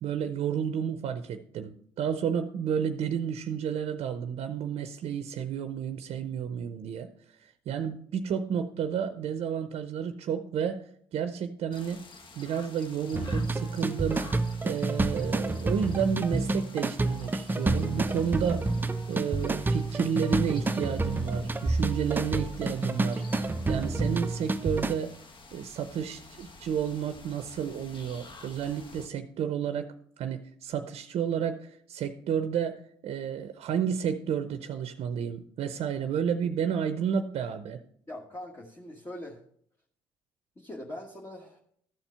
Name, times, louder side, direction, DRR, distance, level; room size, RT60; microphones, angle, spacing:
voice 1, 0.0-7.1 7.4-10.8 11.1-12.1 12.4-18.7 19.1-25.1 25.5-29.9 30.2-37.8, right 8 dB, 65° right, 0.6 m, -31 dB
sound 1, 11.7-29.1, left 3 dB, 50° left, 1.1 m, -50 dB
sound 2, 13.1-24.9, right 2 dB, 15° right, 0.5 m, -29 dB
voice 2, 38.1-39.4 40.6-41.6, left 1 dB, 20° left, 1.4 m, -42 dB
13.0 x 4.4 x 5.5 m
supercardioid pair, 70°, 11 cm